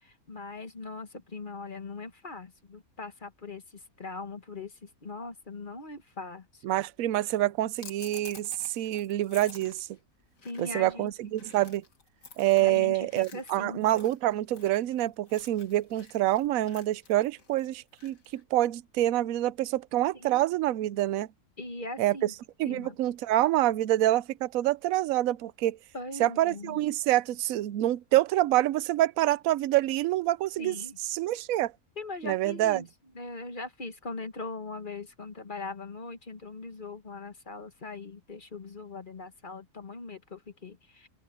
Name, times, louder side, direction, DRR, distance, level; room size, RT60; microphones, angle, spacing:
voice 1, 0.0-3.6 4.0-6.6 10.4-11.1 12.6-13.9 20.2-20.4 21.6-22.3 22.6-22.9 25.9-26.8 30.6-31.0 32.0-32.9 33.1-41.1, left 3 dB, 35° left, 1.4 m, -40 dB
voice 2, 6.6-9.9 10.6-11.8 12.4-21.3 22.0-22.3 22.6-25.8 26.2-30.8 31.0-31.7 32.2-32.9, right 14 dB, 70° right, 1.0 m, -26 dB
sound 1, 7.8-18.4, left 4 dB, 65° left, 2.5 m, -51 dB
open air
omnidirectional pair, 1.5 m